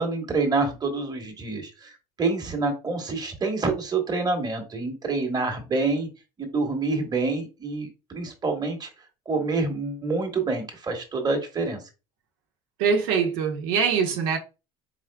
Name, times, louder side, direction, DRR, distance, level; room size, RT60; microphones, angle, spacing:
voice 1, 0.0-1.9 2.2-6.1 6.4-8.9 9.3-11.8, right 3 dB, 25° right, 1.2 m, -27 dB
voice 2, 12.8-14.4, right 6 dB, 80° right, 1.0 m, -23 dB
4.2 x 3.6 x 2.2 m
supercardioid pair, 100°, 17 cm